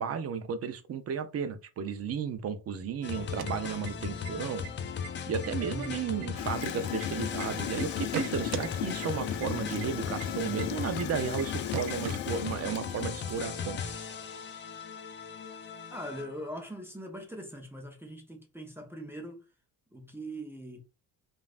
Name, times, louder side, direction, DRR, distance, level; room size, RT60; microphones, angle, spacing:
voice 1, 0.0-4.7 5.3-13.8, right 6 dB, 35° right, 0.5 m, -34 dB
sound 1, 3.0-16.5, left 6 dB, 25° left, 0.4 m, -37 dB
sound 2, 3.2-4.3 4.6-4.7 5.0-5.5 5.8-7.4 7.8-8.7 9.0-9.1 9.4-9.5 9.8-9.9 10.2-10.3 10.6-10.7 11.0-11.1 11.4-11.5 11.7-12.8, right 12 dB, 75° right, 0.6 m, -39 dB
voice 2, 5.6-6.0 15.9-19.5 19.9-20.8, equal, 5° right, 0.8 m, -41 dB
Gurgling / Toilet flush, 6.3-13.4, left 12 dB, 85° left, 0.5 m, -37 dB
3.1 x 2.5 x 2.4 m
supercardioid pair, 85°, 47 cm